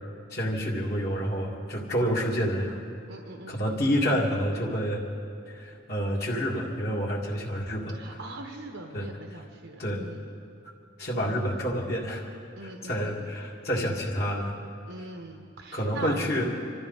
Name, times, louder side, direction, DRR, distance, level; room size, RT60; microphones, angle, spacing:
voice 1, 0.3-2.8 3.5-5.0 5.5-8.2 8.9-9.4 9.8-10.0 11.0-12.2 12.6-14.5 15.0-15.1 15.7-16.4, equal, 55° left, -4 dB, 2.3 m, -29 dB
voice 2, 3.1-3.6 7.9-10.3 11.2-11.5 12.6-13.3 14.9-16.4, right 2 dB, 80° right, 2 dB, 1.1 m, -41 dB
26.0 x 14.0 x 4.1 m, 2.4 s
head